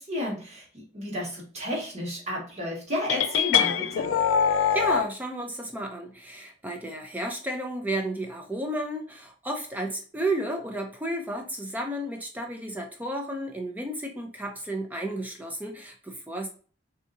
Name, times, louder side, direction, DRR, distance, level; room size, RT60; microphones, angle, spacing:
voice 1, 0.0-4.1, left 1 dB, 35° right, -4 dB, 1.4 m, -32 dB
sound 1, 3.1-5.1, left 8 dB, 65° left, 0.3 m, -23 dB
voice 2, 4.7-16.5, right 1 dB, 10° right, 2 dB, 0.4 m, -32 dB
3.7 x 2.7 x 2.6 m, 0.40 s
head